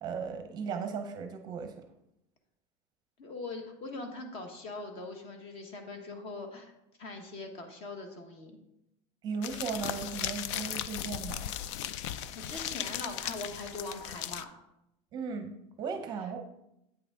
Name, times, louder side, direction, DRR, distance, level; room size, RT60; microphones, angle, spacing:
voice 1, 0.0-1.8 9.2-11.5 15.1-16.4, right 5 dB, 30° right, 6 dB, 0.6 m, -37 dB
voice 2, 3.2-6.7 7.0-8.5 12.3-14.5, left 3 dB, 40° left, 5 dB, 1.2 m, -41 dB
sound 1, 9.4-14.4, left 11 dB, 80° left, 0.4 m, -37 dB
8.7 x 5.8 x 3.7 m, 0.84 s
cardioid pair, 165°, 15 cm